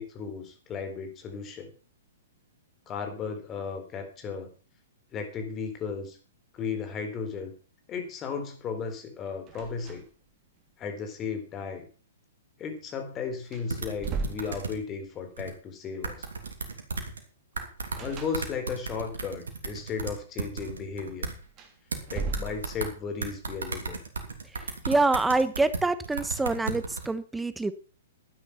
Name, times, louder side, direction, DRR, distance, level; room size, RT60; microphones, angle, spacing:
voice 1, 0.0-1.7 2.9-4.5 5.1-6.2 6.5-7.5 7.9-10.0 10.8-11.8 12.6-16.3 18.0-21.3 22.1-24.0, left 5 dB, 25° left, 6 dB, 4.0 m, -35 dB
sound 1, 9.5-10.3 10.6-10.7 12.9-13.0 13.4-15.2 17.9-18.9 21.4-23.1, right 4 dB, 30° right, 3.2 m, -37 dB
sound 2, 13.7-14.7 15.4-15.5 16.0-17.2 17.6-21.3 21.9-22.9 23.2-27.1, right 4 dB, 75° right, 3.0 m, -35 dB
voice 2, 24.5-27.7, right 3 dB, 5° right, 14 dB, 1.1 m, -26 dB
12.5 x 9.9 x 5.7 m, 0.38 s
figure-of-eight pair, 115°, 0 cm